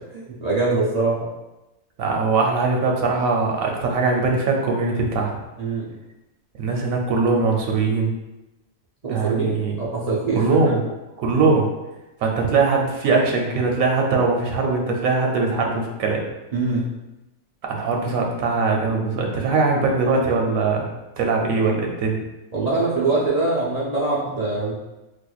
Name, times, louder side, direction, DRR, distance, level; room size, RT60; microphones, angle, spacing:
voice 1, 0.1-1.2 5.6-5.9 9.0-9.5 9.8-10.8 16.5-16.8 22.5-24.8, right 3 dB, 40° right, -8 dB, 0.6 m, -23 dB
voice 2, 2.0-5.4 6.6-8.1 9.1-9.8 10.3-10.8 11.2-11.7 12.2-16.3 17.7-20.9 21.2-22.2, right 4 dB, 80° right, 1 dB, 1.1 m, -21 dB
4.3 x 2.5 x 2.3 m, 0.99 s
omnidirectional pair, 1.4 m